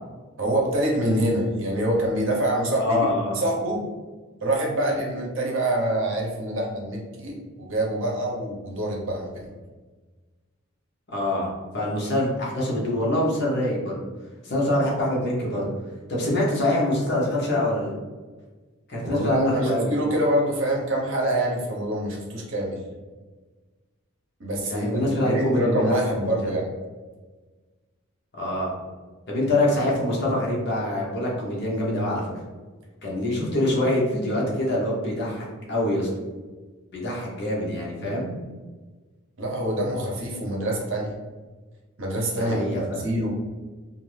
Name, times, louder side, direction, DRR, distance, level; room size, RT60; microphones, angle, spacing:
voice 1, 0.4-3.1 3.3-3.8 4.4-9.5 19.0-22.8 24.4-26.7 39.4-41.1 42.0-43.3, right 1 dB, 60° right, -1 dB, 0.7 m, -25 dB
voice 2, 2.8-3.4 11.1-14.0 14.4-15.7 16.1-17.9 18.9-19.9 24.6-26.0 26.4-26.5 28.3-28.7 29.3-32.2 33.0-36.1 36.9-38.3 42.4-43.0, left 1 dB, 50° left, -4 dB, 0.9 m, -25 dB
2.5 x 2.5 x 3.2 m, 1.3 s
head